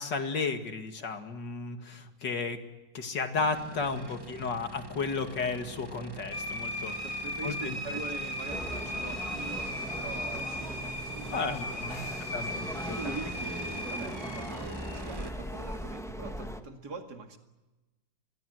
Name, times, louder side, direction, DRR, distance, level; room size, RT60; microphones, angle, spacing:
voice 1, 0.0-2.6 2.9-7.0 7.4-8.0 11.3-12.1 12.3-13.2, left 4 dB, 85° left, 6 dB, 2.8 m, -33 dB
sound 1, 3.4-15.3, right 4 dB, 20° right, 0.8 m, -45 dB
sound 2, 6.3-15.9, left 1 dB, 55° left, 5.5 m, -38 dB
voice 2, 6.9-12.3 12.8-17.4, right 4 dB, 65° right, 5 dB, 2.8 m, -43 dB
sound 3, 8.5-16.6, equal, ahead, 1.1 m, -40 dB
26.0 x 21.5 x 8.0 m, 1.1 s
omnidirectional pair, 1.9 m